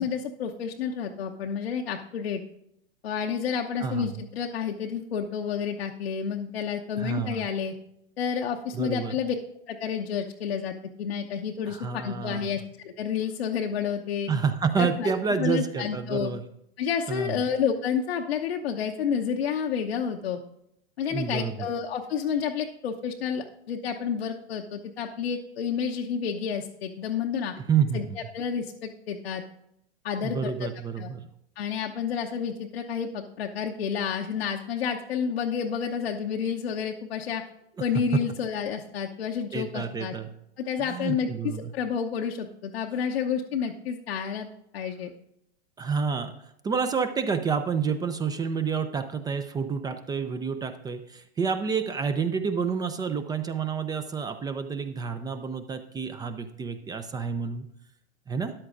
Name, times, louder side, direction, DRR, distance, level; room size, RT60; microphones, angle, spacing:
voice 1, 0.0-2.4 3.0-7.7 8.2-9.3 9.7-14.3 14.8-15.1 15.4-16.3 16.8-20.4 21.0-27.5 27.9-28.0 28.3-29.4 30.0-30.7 31.0-31.1 31.6-37.4 37.8-40.1 40.6-44.5 44.7-45.1, left 7 dB, 70° left, 1 dB, 0.9 m, -30 dB
voice 2, 7.0-7.5 8.7-9.1 11.7-12.5 14.3-16.4 17.1-17.4 21.1-21.5 27.7-28.2 30.2-31.3 38.1-38.2 39.5-40.3 40.8-41.7 45.8-46.3 46.6-57.7 58.3-58.5, right 6 dB, 10° right, 9 dB, 0.5 m, -29 dB
13.0 x 10.0 x 2.5 m, 0.77 s
hypercardioid pair, 105°, 32 cm